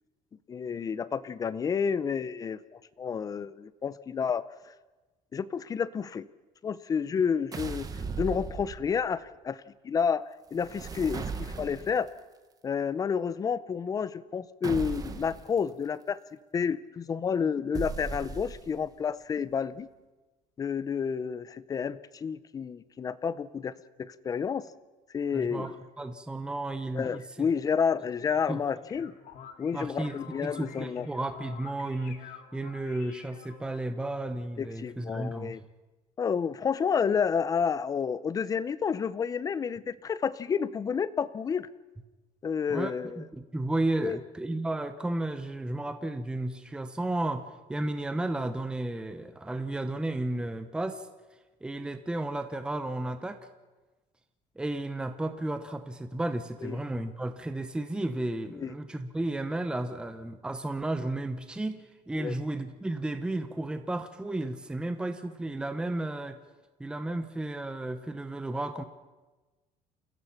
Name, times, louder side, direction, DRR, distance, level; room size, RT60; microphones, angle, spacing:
voice 1, 0.5-4.5 5.3-6.3 6.6-7.9 8.2-10.2 10.5-12.1 12.6-16.2 16.5-19.9 20.6-23.7 24.0-24.6 25.1-25.8 26.9-29.1 29.6-31.1 34.6-35.6 36.2-41.7 42.4-43.2 44.0-44.2 56.6-56.8 58.6-58.7 62.2-62.3, left 6 dB, 25° left, 16 dB, 0.6 m, -30 dB
sound 1, 7.5-9.1 10.5-12.1 14.6-15.5 17.7-18.9, right 5 dB, 25° right, 1.2 m, -37 dB
voice 2, 25.3-27.5 28.5-28.6 29.7-35.5 42.7-42.9 43.2-51.1 51.6-53.4 54.6-66.4 66.8-68.8, right 2 dB, 5° right, 9 dB, 0.9 m, -33 dB
sound 2, 28.9-33.9, left 7 dB, 55° left, 2.0 m, -48 dB
29.0 x 16.0 x 5.8 m, 1.2 s
cardioid pair, 160°, 15 cm